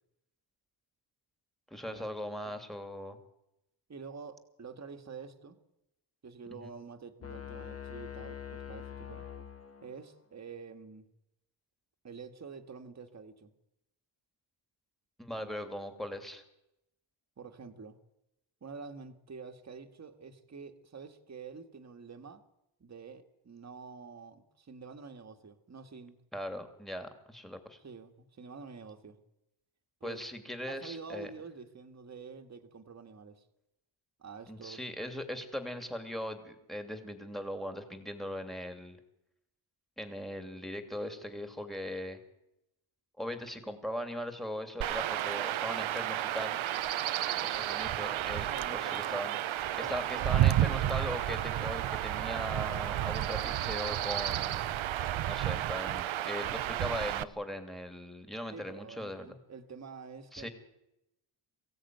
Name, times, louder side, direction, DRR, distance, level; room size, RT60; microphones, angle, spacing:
voice 1, 1.7-3.2 6.6-6.7 15.2-16.4 26.3-27.8 30.0-31.3 34.5-39.0 40.0-42.2 43.2-46.6 47.4-49.3 49.7-54.6 55.3-59.4 60.3-60.5, equal, ahead, 7 dB, 2.7 m, -39 dB
voice 2, 3.9-5.6 6.2-9.3 9.8-11.1 12.0-13.5 15.3-15.5 17.4-18.0 18.6-22.4 22.8-26.2 26.5-26.6 27.8-29.2 30.0-30.2 30.7-33.4 34.2-34.9 48.5-49.2 49.8-51.0 58.5-60.5, right 5 dB, 30° right, 6 dB, 1.9 m, -47 dB
sound 1, 7.2-10.2, left 8 dB, 30° left, 1.6 m, -44 dB
Chirp tweet / Wind / Stream, 44.8-57.2, right 12 dB, 70° right, 0.9 m, -31 dB
23.0 x 16.0 x 9.4 m, 0.87 s
wide cardioid pair, 135°, 50 cm